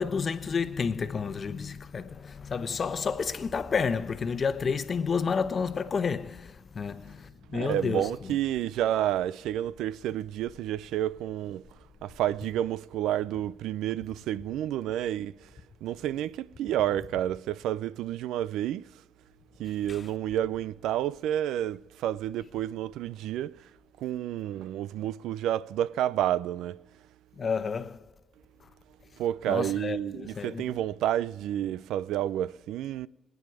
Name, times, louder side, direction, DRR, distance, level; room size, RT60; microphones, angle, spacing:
voice 1, 0.0-8.1 19.9-20.0 27.4-28.1 28.6-28.7 29.5-30.7, left 5 dB, 45° left, 1.0 m, -30 dB
voice 2, 7.5-19.0 19.6-23.7 24.0-26.8 29.2-33.1, right 12 dB, 90° right, 0.4 m, -30 dB
25.5 x 9.3 x 4.8 m
cardioid pair, 90°, 0 cm